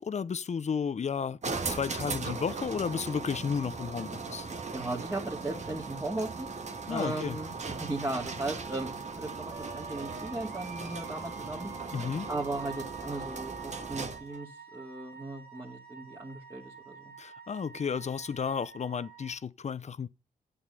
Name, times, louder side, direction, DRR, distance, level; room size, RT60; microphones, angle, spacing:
voice 1, 0.0-4.5 6.9-7.4 11.9-12.3 17.2-20.1, left 6 dB, 45° left, 0.7 m, -33 dB
sound 1, 1.4-14.3, right 4 dB, 45° right, 1.6 m, -38 dB
voice 2, 4.7-6.5 6.9-7.5 7.8-11.7 12.3-17.0, right 2 dB, 15° right, 2.5 m, -37 dB
Wind instrument woodwind instrument, 9.5-19.4, right 4 dB, 70° right, 2.7 m, -50 dB
8.7 x 7.2 x 6.9 m
supercardioid pair, 50°, 16 cm